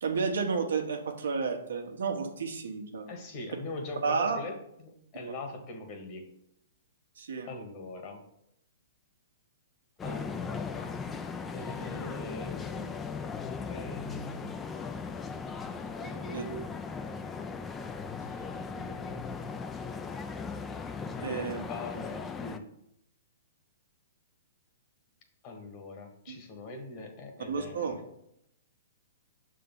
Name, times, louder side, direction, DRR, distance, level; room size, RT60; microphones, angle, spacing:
voice 1, 0.0-3.1 4.0-4.4 7.2-7.5 16.3-16.4 21.2-21.6 26.3-26.4 27.5-28.0, right 5 dB, 85° right, 3 dB, 1.2 m, -31 dB
voice 2, 3.1-6.2 7.5-8.2 10.0-10.9 11.5-13.0 13.6-14.7 15.8-16.8 17.4-17.5 18.2-19.5 21.2-22.7 25.4-28.0, left 2 dB, 35° left, 4 dB, 1.5 m, -42 dB
sound 1, 10.0-22.6, left 5 dB, 15° left, 0.4 m, -38 dB
6.6 x 3.8 x 5.5 m, 0.77 s
hypercardioid pair, 145°, 0 cm